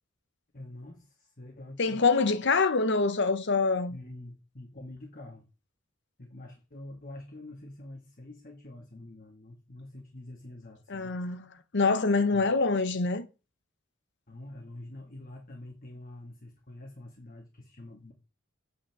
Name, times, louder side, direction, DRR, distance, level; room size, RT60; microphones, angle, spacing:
voice 1, 0.5-2.0 3.9-5.5 6.2-11.1 12.3-12.7 14.3-18.1, left 1 dB, 45° left, 1.9 m, -46 dB
voice 2, 1.8-4.0 10.9-11.5 11.7-13.3, left 4 dB, 60° left, 0.9 m, -25 dB
8.9 x 5.8 x 7.2 m
head